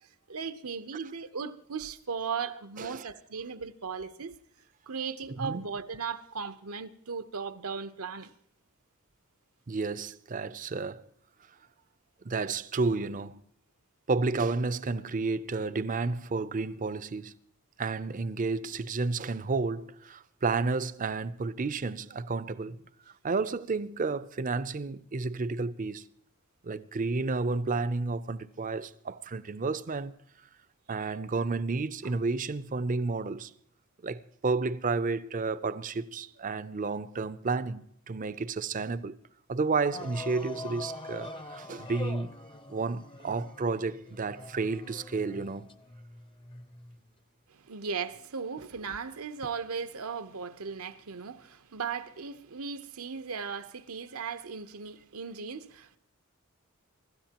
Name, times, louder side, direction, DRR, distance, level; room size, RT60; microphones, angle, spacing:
voice 1, 0.3-4.3 4.9-8.3 47.5-56.0, right 5 dB, 80° right, 0.9 m, -37 dB
voice 2, 9.7-11.1 12.2-13.4 14.1-17.3 17.8-22.8 23.2-26.1 26.6-30.2 30.9-33.5 34.0-39.2 39.5-42.3 42.7-45.8, right 3 dB, 40° right, 0.5 m, -31 dB
sound 1, 39.9-47.1 48.1-48.2, left 2 dB, 25° left, 0.7 m, -44 dB
24.5 x 13.0 x 2.9 m
head